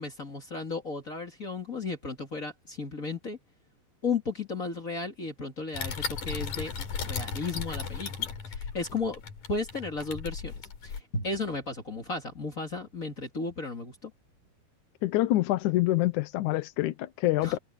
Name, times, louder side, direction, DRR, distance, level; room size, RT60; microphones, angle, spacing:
voice 1, 0.0-3.4 4.0-9.2 9.5-10.5 10.8-14.1 17.4-17.6, left 3 dB, 30° left, 1.8 m, -34 dB
sound 1, 5.7-11.0, left 6 dB, 55° left, 4.3 m, -36 dB
voice 2, 15.0-17.6, left 16 dB, 75° left, 1.9 m, -26 dB
omnidirectional pair, 4.4 m